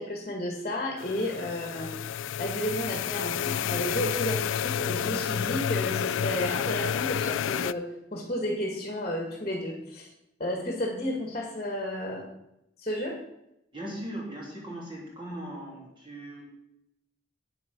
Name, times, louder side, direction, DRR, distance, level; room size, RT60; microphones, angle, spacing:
voice 1, 0.0-1.9 2.4-10.1 10.4-12.3 12.8-13.1, left 1 dB, 35° left, 1 dB, 1.8 m, -32 dB
sound 1, 1.0-7.7, left 9 dB, 75° left, 0.3 m, -30 dB
voice 2, 13.7-16.4, right 1 dB, 25° right, -4 dB, 3.4 m, -39 dB
9.2 x 8.6 x 6.1 m, 0.83 s
head